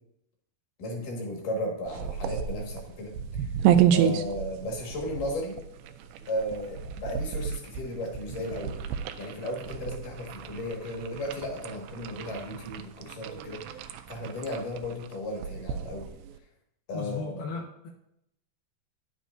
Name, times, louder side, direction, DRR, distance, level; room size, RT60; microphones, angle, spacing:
voice 1, 0.8-3.5 3.9-5.6 6.3-8.8 9.2-16.1 16.9-17.4, left 1 dB, 65° left, 0 dB, 3.3 m, -35 dB
sound 1, 1.9-16.4, right 9 dB, 90° right, 2.5 m, -31 dB
voice 2, 16.9-17.9, left 4 dB, 80° left, -2 dB, 2.9 m, -36 dB
10.0 x 9.0 x 2.6 m, 0.76 s
omnidirectional pair, 4.3 m